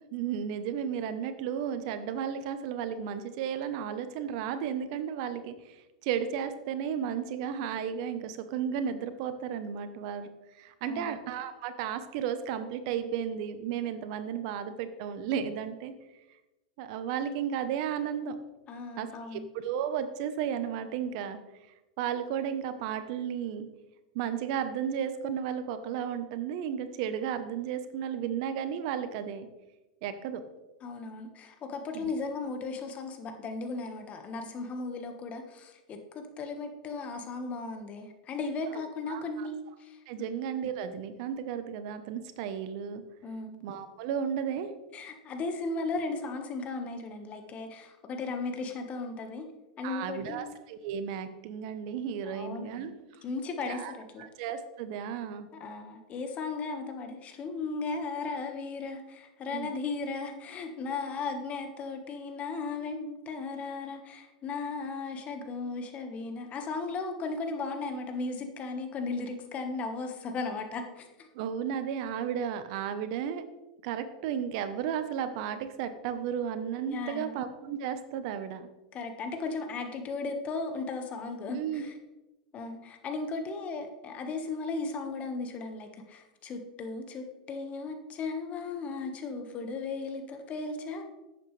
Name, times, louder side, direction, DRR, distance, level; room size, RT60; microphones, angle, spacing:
voice 1, 0.1-15.9 16.8-18.4 19.0-21.4 22.0-23.7 24.1-29.5 30.0-30.4 31.9-32.1 38.7-38.8 39.1-39.5 40.1-43.0 43.6-44.7 49.8-52.9 53.7-53.9 54.2-55.5 59.5-59.7 71.3-73.4 73.8-78.7 81.5-81.9, right 8 dB, 55° right, 10 dB, 1.0 m, -34 dB
voice 2, 10.8-11.1 18.7-19.4 30.8-40.3 43.2-43.6 44.9-49.5 49.8-50.5 52.2-54.3 55.3-55.4 55.6-71.3 76.9-77.3 78.9-81.9 82.5-91.0, left 3 dB, 30° left, 5 dB, 1.5 m, -36 dB
11.5 x 8.6 x 3.3 m, 1.0 s
hypercardioid pair, 120°, 4 cm